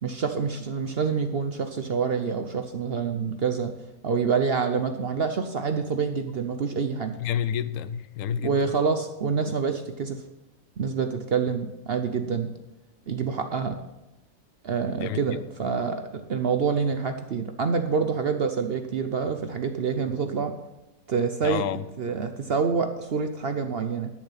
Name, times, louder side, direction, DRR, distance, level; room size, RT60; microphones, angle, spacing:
voice 1, 0.0-3.7 4.0-7.2 8.4-10.2 10.8-12.5 13.1-13.8 14.6-20.5 21.1-21.6 22.0-24.1, right 5 dB, 55° right, 0.8 m, -27 dB
voice 2, 7.2-8.8 15.0-15.2 21.4-21.8, left 9 dB, 70° left, 1.0 m, -29 dB
12.0 x 7.1 x 5.7 m
omnidirectional pair, 1.5 m